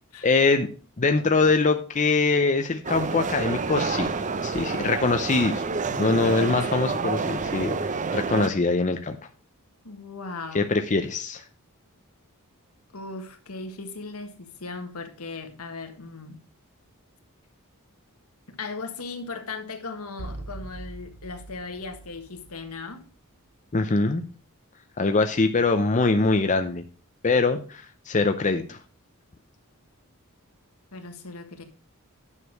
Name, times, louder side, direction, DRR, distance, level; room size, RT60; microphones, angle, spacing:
voice 1, 0.2-0.7 1.0-4.1 4.4-9.2 10.5-11.4 23.7-24.2 25.0-26.8 27.2-28.8, left 3 dB, 35° left, 0.6 m, -23 dB
sound 1, 2.8-8.5, right 4 dB, 35° right, 0.6 m, -28 dB
voice 2, 6.2-7.0 9.8-10.7 12.9-16.4 18.5-23.0 30.9-31.6, left 3 dB, 80° left, 1.6 m, -38 dB
sound 2, 20.2-23.1, right 2 dB, 60° right, 1.0 m, -41 dB
9.9 x 6.3 x 4.8 m
head